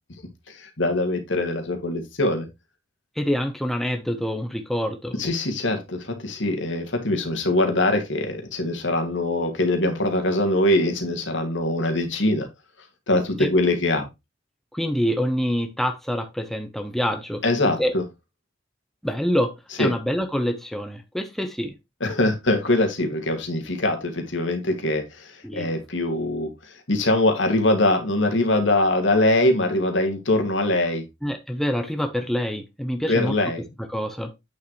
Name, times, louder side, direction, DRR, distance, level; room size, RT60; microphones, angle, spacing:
voice 1, 0.5-2.5 5.2-12.5 13.1-14.1 17.4-18.0 19.8-19.9 22.0-31.0 33.1-33.6, left 1 dB, 70° left, 2.2 m, -23 dB
voice 2, 3.2-5.2 13.4-13.5 14.7-17.4 17.8-17.9 19.0-19.5 19.8-21.7 25.4-25.7 31.2-33.3 33.8-34.3, equal, ahead, 0.8 m, -26 dB
8.6 x 6.5 x 3.1 m
head